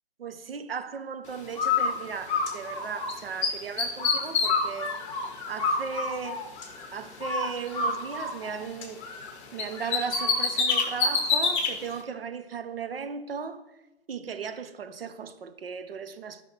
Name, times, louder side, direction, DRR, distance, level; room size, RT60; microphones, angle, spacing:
voice 1, 0.2-4.9 5.5-9.0 9.5-13.6 14.1-16.4, right 6 dB, 60° right, 1.0 m, -36 dB
Bird, 1.5-3.1 3.4-6.9 7.2-9.3 9.6-11.7, left 4 dB, 25° left, 1.7 m, -27 dB
14.5 x 6.0 x 3.3 m
figure-of-eight pair, 140°, 33 cm